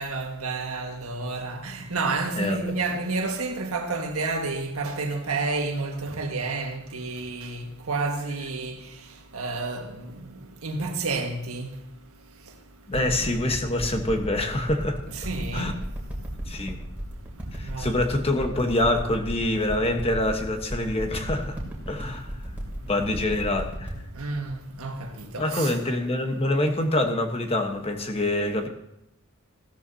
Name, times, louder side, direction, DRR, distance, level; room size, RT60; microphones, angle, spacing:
voice 1, 0.0-8.8 9.3-10.1 10.6-11.7 12.9-13.1 15.1-15.7 17.6-18.1 24.1-25.8, right 3 dB, 85° right, 1.7 m, -30 dB
voice 2, 2.4-2.8 12.9-15.0 15.5-15.7 16.5-16.8 17.5-21.6 21.9-23.9 25.4-28.7, left 1 dB, 30° left, 1.2 m, -26 dB
sound 1, 12.9-25.7 26.3-26.4, equal, 5° right, 2.9 m, -34 dB
15.5 x 13.0 x 2.8 m
head